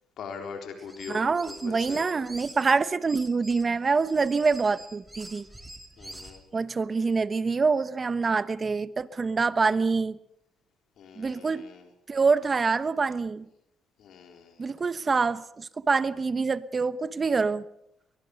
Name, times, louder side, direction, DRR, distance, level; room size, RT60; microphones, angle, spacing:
voice 1, 0.2-2.0 6.0-6.4 11.0-11.9 14.0-14.7, left 6 dB, 70° left, 3.8 m, -41 dB
sound 1, 0.8-2.6 3.1-6.4, right 1 dB, 10° right, 4.5 m, -45 dB
voice 2, 1.1-5.5 6.5-10.2 11.2-11.6 12.1-13.5 14.6-17.6, right 4 dB, 35° right, 1.1 m, -25 dB
23.0 x 21.0 x 6.6 m
cardioid pair, 90°, 0 cm